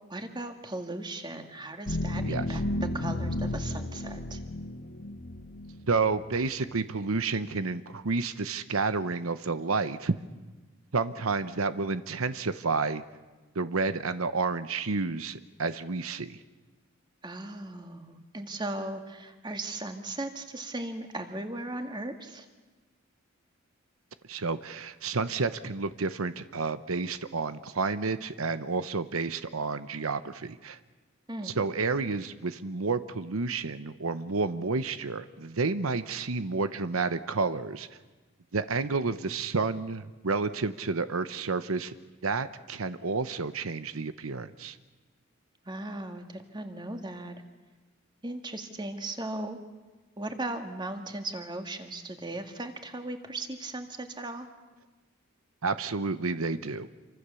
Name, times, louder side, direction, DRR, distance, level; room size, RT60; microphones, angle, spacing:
voice 1, 0.1-2.6 2.9-4.4 17.2-22.5 31.3-31.5 45.7-47.4 48.2-49.6 50.2-54.5, right 2 dB, 20° right, 5 dB, 2.0 m, -37 dB
sound 1, 1.9-6.6, left 1 dB, 65° left, 1.5 m, -33 dB
voice 2, 5.9-10.1 10.9-13.0 13.5-16.4 24.3-30.8 31.4-38.0 38.5-42.0 42.2-44.8 55.6-56.9, right 4 dB, 90° right, 12 dB, 0.9 m, -30 dB
27.5 x 24.5 x 7.0 m, 1.2 s
head